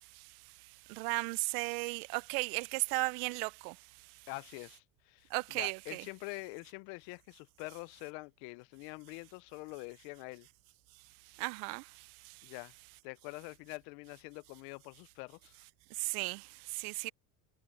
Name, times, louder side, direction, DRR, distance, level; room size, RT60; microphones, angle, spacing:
voice 1, 0.0-4.3 5.3-6.1 11.2-12.5 15.9-17.1, right 30 dB, 85° right, 0.5 m, -37 dB
voice 2, 4.3-5.3 5.5-10.5 12.4-12.7 13.0-15.5, left 27 dB, 70° left, 0.7 m, -45 dB
cardioid pair, 155°, 44 cm